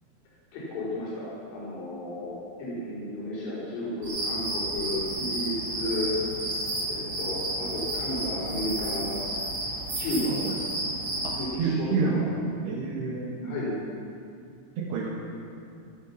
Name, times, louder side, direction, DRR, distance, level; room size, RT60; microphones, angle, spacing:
voice 1, 0.5-2.3 2.6-6.1 6.9-9.2 10.0-10.4 11.3-12.2 13.4-13.7, left 1 dB, 85° left, -12 dB, 7.2 m, -33 dB
sound 1, 4.0-11.4, right 1 dB, 55° right, 7.3 m, -31 dB
voice 2, 11.2-12.2 12.6-13.6 14.8-15.1, right 4 dB, 75° right, -2 dB, 3.6 m, -29 dB
19.0 x 12.5 x 6.0 m, 2.4 s
omnidirectional pair, 4.9 m